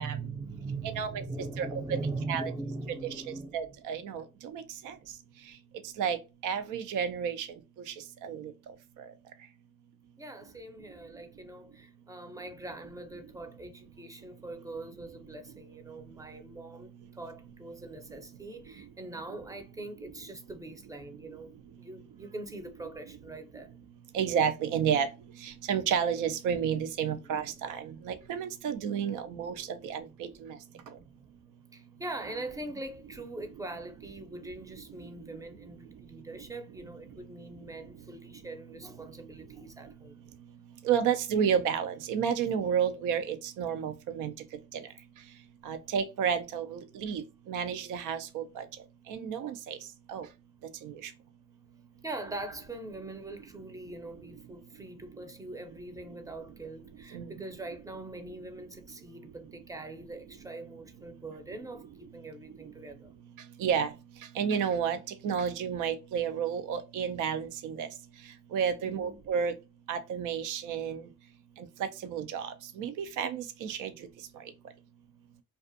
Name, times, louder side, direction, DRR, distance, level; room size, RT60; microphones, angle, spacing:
voice 1, 0.0-3.8 10.2-23.7 27.1-27.2 29.4-29.7 30.0-30.2 30.7-31.3 31.7-40.3 52.0-63.1 68.8-69.2, right 2 dB, 10° right, 0.5 m, -42 dB
voice 2, 3.5-4.2 4.5-4.9 6.0-6.2 6.4-7.5 8.2-8.4 24.1-25.1 25.4-30.5 40.8-44.3 45.7-47.2 47.5-48.6 49.1-49.8 50.1-50.3 50.8-50.9 57.1-57.3 63.6-63.9 64.4-65.0 65.2-67.9 68.5-69.5 69.9-71.0 71.8-72.5 72.8-73.9, right 7 dB, 90° right, 0.5 m, -31 dB
2.4 x 2.3 x 2.6 m
cardioid pair, 90°, 30 cm